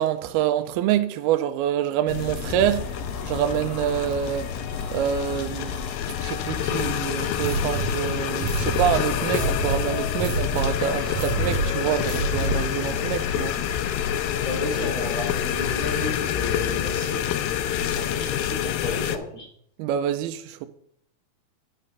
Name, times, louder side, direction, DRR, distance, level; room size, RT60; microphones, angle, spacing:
voice 1, 0.0-2.9 3.3-4.5 4.9-5.7 6.2-13.6 19.8-20.7, right 10 dB, 90° right, 2.6 m, -26 dB
sound 1, 2.1-19.2, left 10 dB, 80° left, 2.3 m, -28 dB
sound 2, 2.5-18.6, left 4 dB, 50° left, 3.6 m, -37 dB
sound 3, 7.4-12.8, right 2 dB, 60° right, 2.4 m, -28 dB
voice 2, 14.4-17.3 17.8-19.5, left 1 dB, 20° left, 4.9 m, -33 dB
11.0 x 6.5 x 5.5 m
omnidirectional pair, 4.3 m